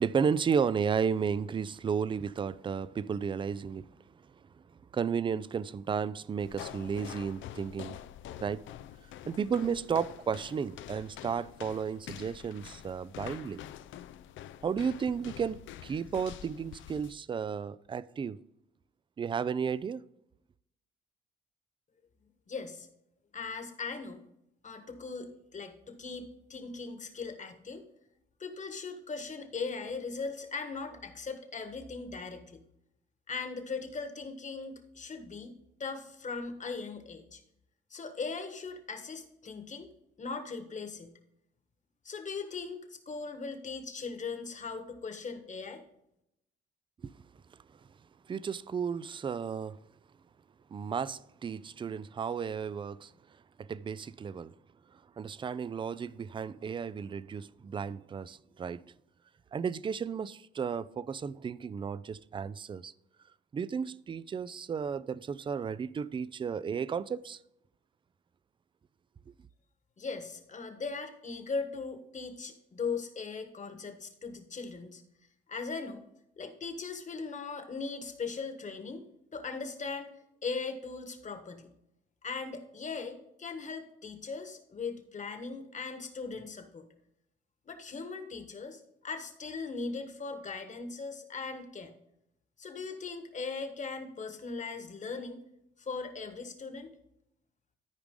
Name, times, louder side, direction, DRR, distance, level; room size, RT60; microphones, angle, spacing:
voice 1, 0.0-3.9 4.9-8.0 8.4-8.6 9.3-13.6 14.6-18.4 19.2-20.0 47.0-47.1 48.3-49.8 50.7-53.1 53.6-54.5 54.9-58.8 59.5-62.9 63.5-67.4, right 6 dB, 25° right, 0.3 m, -33 dB
sound 1, 6.4-17.2, left 11 dB, 75° left, 0.5 m, -46 dB
voice 2, 22.5-22.9 23.3-24.2 24.6-27.8 28.4-32.6 33.3-35.5 35.8-37.4 37.9-39.9 40.2-41.1 42.0-45.8 70.0-75.0 75.5-76.0 76.4-79.1 79.3-80.1 80.4-81.7 82.2-86.9 87.7-92.0 92.6-95.4 95.8-96.9, left 4 dB, 40° left, 1.4 m, -39 dB
13.5 x 4.8 x 3.7 m
cardioid pair, 90°, 20 cm